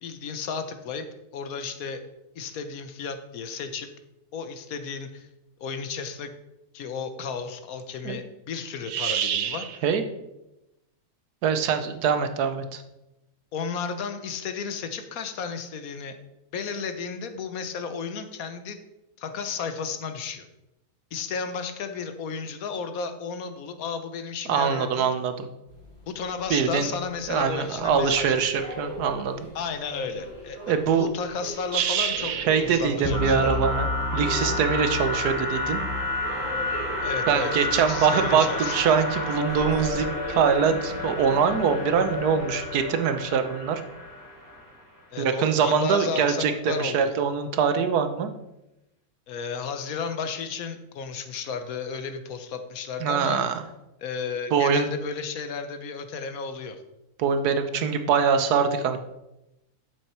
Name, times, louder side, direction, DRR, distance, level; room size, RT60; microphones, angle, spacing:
voice 1, 0.0-1.1 1.3-2.0 2.3-3.9 4.3-5.3 5.6-6.3 6.7-9.7 13.5-16.2 16.5-18.8 19.2-20.5 21.1-25.1 26.1-28.7 29.5-33.6 37.0-38.7 45.1-47.1 49.3-53.4 54.0-56.8, left 5 dB, 70° left, 9 dB, 1.2 m, -33 dB
voice 2, 8.9-10.0 11.4-12.8 24.5-25.5 26.5-26.9 27.3-29.4 30.7-31.1 31.7-35.8 37.3-43.8 45.2-48.3 53.0-53.6 54.5-54.9 57.2-59.0, right 6 dB, 85° right, 8 dB, 1.4 m, -24 dB
sound 1, 25.7-42.3, equal, 40° left, 2.9 m, -40 dB
sound 2, 33.0-44.8, left 2 dB, 15° left, 1.5 m, -30 dB
8.6 x 7.0 x 4.4 m, 0.92 s
omnidirectional pair, 1.6 m